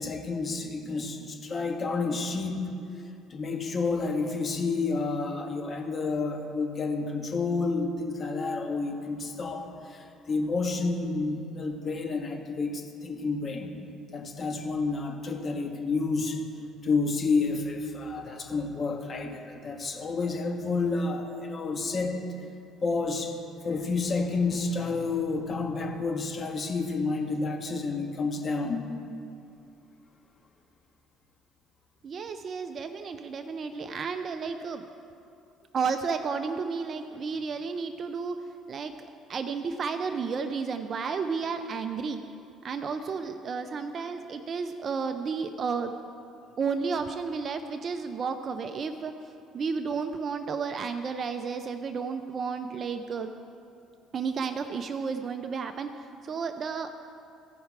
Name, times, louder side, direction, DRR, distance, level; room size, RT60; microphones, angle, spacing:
voice 1, 0.0-2.7 3.3-13.7 14.1-16.4 16.8-22.2 22.8-23.4 23.6-28.9, left 3 dB, 40° left, 4 dB, 1.2 m, -30 dB
voice 2, 32.0-34.9 35.7-38.4 38.7-42.2 42.6-45.9 46.6-49.1 49.5-53.3 54.1-56.9, right 5 dB, 45° right, 7 dB, 0.5 m, -32 dB
15.0 x 5.7 x 4.7 m, 2.6 s
supercardioid pair, 80°, 0 cm